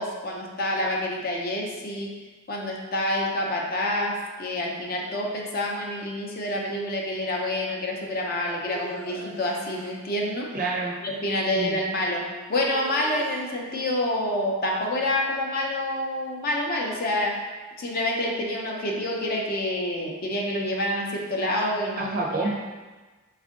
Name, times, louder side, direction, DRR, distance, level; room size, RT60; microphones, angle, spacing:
voice 1, 0.0-2.1 2.5-10.5 11.0-12.2 12.5-17.4 17.8-22.1 22.4-22.5, left 1 dB, 45° left, 0 dB, 0.5 m, -27 dB
sound 1, 8.6-10.0 12.6-13.8, right 2 dB, 80° right, 0.8 m, -43 dB
voice 2, 10.5-11.0 11.5-11.8 22.0-22.5, right 2 dB, 40° right, -2 dB, 0.5 m, -27 dB
4.3 x 2.4 x 3.6 m, 1.3 s
head